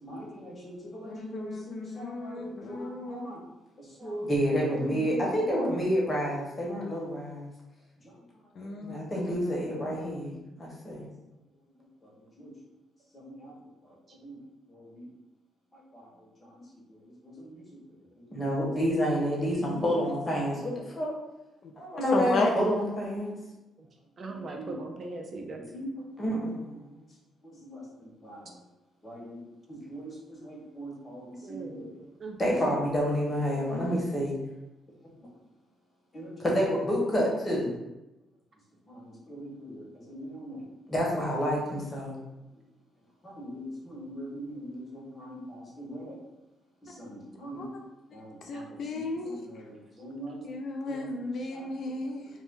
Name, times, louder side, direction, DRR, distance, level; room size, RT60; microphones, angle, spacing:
voice 1, 0.0-3.4 3.8-7.5 8.0-8.1 8.6-11.1 12.0-12.1 12.4-12.5 13.1-13.6 13.8-13.9 14.2-14.4 14.7-15.1 15.7-16.6 16.9-17.6 18.2-21.1 21.7-23.3 24.2-24.7 25.7-25.9 26.2-26.9 27.4-28.5 29.0-29.4 29.7-31.9 32.4-34.4 36.1-37.7 38.9-40.6 40.9-42.2 43.2-46.2 46.8-47.6 48.1-50.4 50.8-51.7, equal, 25° left, -4 dB, 1.1 m, -32 dB
voice 2, 1.1-3.3 4.9-5.7 8.6-10.3 21.6-21.7 22.1-22.5 47.5-47.8 48.4-49.4 50.4-52.3, left 3 dB, 65° left, 3 dB, 0.4 m, -34 dB
voice 3, 19.6-20.1 22.1-22.4 23.8-23.9 24.2-25.6 31.4-32.6 47.2-47.4 48.5-48.7, right 3 dB, 45° right, 2 dB, 0.4 m, -40 dB
2.6 x 2.1 x 3.6 m, 0.98 s
cardioid pair, 90°, 0 cm